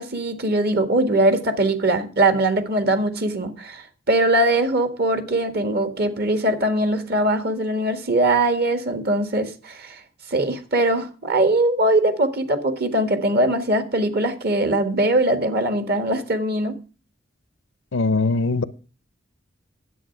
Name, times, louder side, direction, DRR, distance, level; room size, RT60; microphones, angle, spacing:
voice 1, 0.0-10.0 10.3-16.8, right 1 dB, 55° right, 1.6 m, -21 dB
voice 2, 17.9-18.6, left 3 dB, 85° left, 0.7 m, -21 dB
10.0 x 8.0 x 5.7 m
head